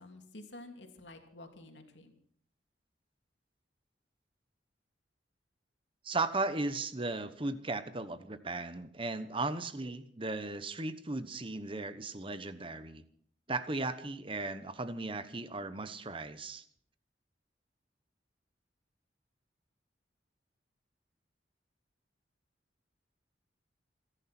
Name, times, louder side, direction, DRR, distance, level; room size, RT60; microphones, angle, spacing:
voice 1, 0.0-2.1, left 2 dB, 80° left, 4 dB, 2.8 m, -50 dB
voice 2, 6.0-13.0 13.5-16.6, right 3 dB, 30° right, 12 dB, 1.0 m, -36 dB
28.0 x 11.0 x 4.4 m, 0.62 s
head